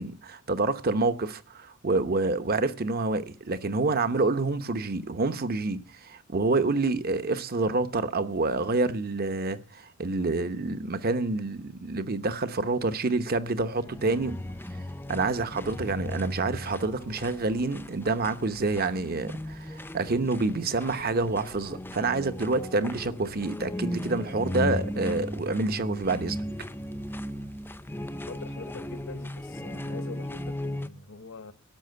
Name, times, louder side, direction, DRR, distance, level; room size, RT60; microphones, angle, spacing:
voice 1, 0.0-14.4 15.1-26.4, right 3 dB, 45° right, 1.0 m, -28 dB
sound 1, 13.7-30.9, left 1 dB, 10° left, 0.6 m, -36 dB
voice 2, 27.9-31.5, left 3 dB, 65° left, 0.9 m, -44 dB
12.0 x 6.7 x 9.4 m
head